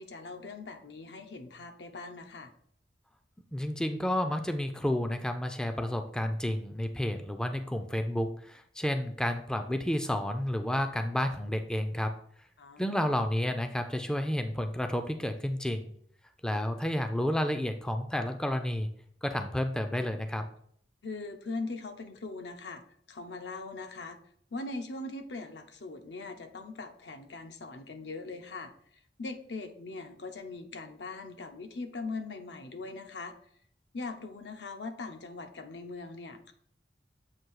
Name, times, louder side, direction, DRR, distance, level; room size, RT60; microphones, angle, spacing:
voice 1, 0.0-2.5 12.6-12.9 21.0-22.8 23.1-24.2 24.5-28.7 29.2-33.3 33.9-36.5, left 3 dB, 75° left, 6 dB, 0.7 m, -41 dB
voice 2, 3.5-12.1 12.8-15.9 16.4-18.9 19.2-20.5, left 1 dB, 5° left, 6 dB, 0.4 m, -31 dB
7.5 x 2.7 x 4.7 m, 0.63 s
head